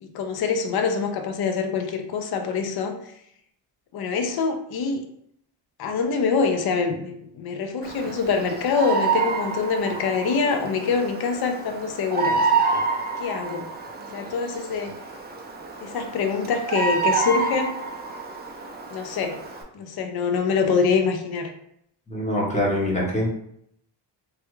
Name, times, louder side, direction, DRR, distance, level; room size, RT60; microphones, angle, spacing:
voice 1, 0.0-2.9 3.9-5.1 5.8-12.8 13.2-13.7 14.0-14.9 15.8-17.8 18.9-19.4 19.7-21.5, left 5 dB, 55° left, 5 dB, 0.6 m, -25 dB
Bird vocalization bird call bird song, 7.8-19.6, right 4 dB, 25° right, 0.4 m, -28 dB
voice 2, 22.1-23.4, left 1 dB, 15° left, -4 dB, 1.0 m, -24 dB
3.4 x 2.3 x 3.0 m, 0.70 s
cardioid pair, 125°, 46 cm